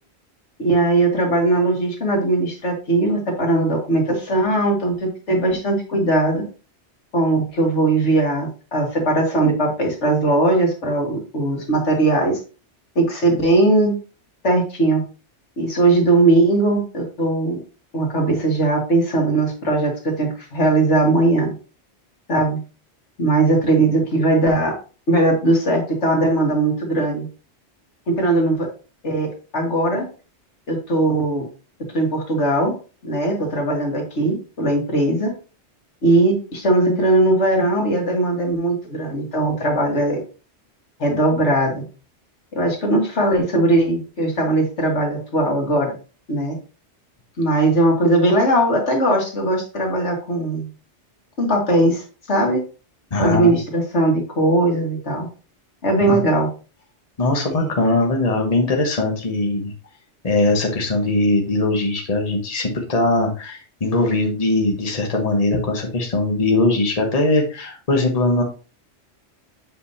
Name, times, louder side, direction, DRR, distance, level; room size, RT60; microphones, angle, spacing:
voice 1, 0.6-6.4 7.1-12.4 13.0-14.0 14.4-15.0 15.6-17.6 17.9-21.5 22.3-22.6 23.2-24.7 25.1-27.3 28.1-28.7 29.0-30.1 30.7-31.5 31.9-32.7 33.0-35.3 36.0-40.2 41.0-41.8 42.5-46.0 46.3-46.6 47.4-50.7 51.4-52.6 53.2-55.3 55.8-56.5 57.5-57.7, right 2 dB, 80° left, 0 dB, 2.2 m, -19 dB
voice 2, 53.1-53.5 56.0-56.2 57.2-59.7 60.2-68.4, left 2 dB, 35° left, 1 dB, 1.3 m, -20 dB
7.7 x 5.1 x 2.8 m, 0.35 s
omnidirectional pair, 1.2 m